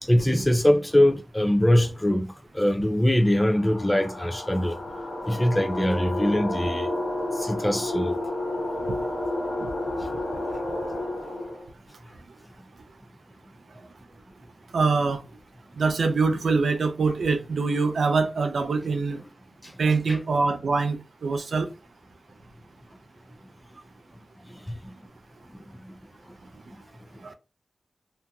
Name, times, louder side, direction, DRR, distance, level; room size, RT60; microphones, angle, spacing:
voice 1, 0.0-2.3 2.5-4.8 5.3-6.9 7.4-8.2 19.6-19.7 20.1-20.2 24.8-24.9, left 1 dB, 15° left, 0.4 m, -22 dB
sound 1, 3.3-11.7, left 1 dB, 60° left, 1.3 m, -31 dB
voice 2, 14.7-15.2 15.8-19.2 19.8-21.7 27.2-27.3, right 4 dB, 85° right, 0.4 m, -24 dB
2.9 x 2.6 x 2.3 m
wide cardioid pair, 60°, 0 cm